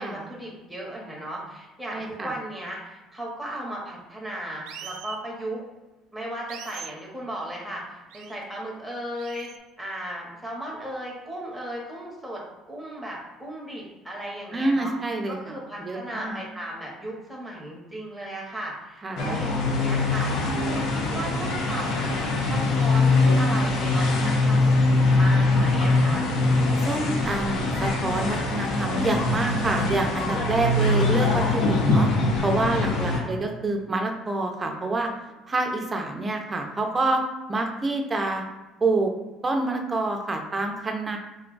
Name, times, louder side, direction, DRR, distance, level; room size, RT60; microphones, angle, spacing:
voice 1, 0.0-5.6 6.1-9.5 9.8-14.9 15.3-22.1 22.5-26.3 33.1-33.4, right 1 dB, ahead, -4 dB, 0.9 m, -36 dB
voice 2, 1.9-2.4 14.5-15.4 15.8-16.4 19.0-19.3 26.8-32.1 32.4-35.1 35.5-37.2 37.5-38.4 38.8-39.1 39.4-41.2, right 2 dB, 15° right, 3 dB, 0.5 m, -27 dB
sound 1, 4.7-5.2 6.5-7.0 8.1-8.4 9.2-9.6, right 8 dB, 75° right, 0.4 m, -41 dB
sound 2, 19.2-33.2, left 2 dB, 65° left, 0.6 m, -22 dB
3.8 x 2.3 x 3.8 m, 1.1 s
cardioid pair, 160°, 0 cm